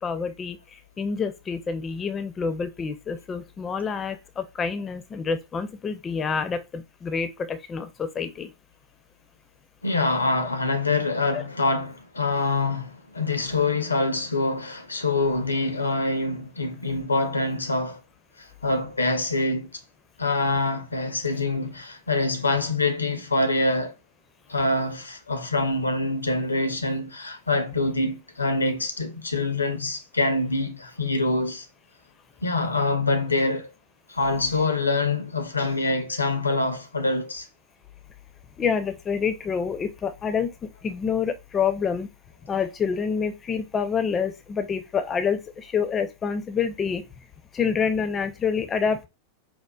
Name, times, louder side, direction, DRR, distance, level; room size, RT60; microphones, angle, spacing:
voice 1, 0.0-8.5 11.3-11.4 16.9-17.0 38.6-40.5 40.8-42.1 42.5-47.0 47.5-49.1, left 6 dB, 20° left, 0.4 m, -27 dB
voice 2, 9.8-18.0 18.4-19.8 20.2-23.9 24.5-31.7 32.4-33.7 34.1-37.5, left 2 dB, 80° left, 0.5 m, -25 dB
4.2 x 2.1 x 2.3 m
figure-of-eight pair, 90°, 0 cm